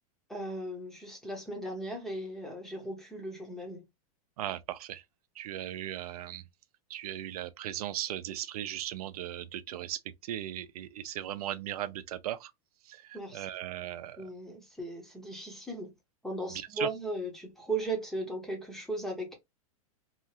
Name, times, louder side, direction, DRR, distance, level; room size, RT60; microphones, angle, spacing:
voice 1, 0.3-3.8 13.1-13.4 14.2-15.9 16.2-19.4, right 2 dB, ahead, 0.6 m, -37 dB
voice 2, 4.4-5.0 5.4-6.4 6.9-12.5 12.9-14.3 16.5-16.9, right 12 dB, 80° right, 0.4 m, -37 dB
2.8 x 2.4 x 2.7 m
supercardioid pair, 165°, 19 cm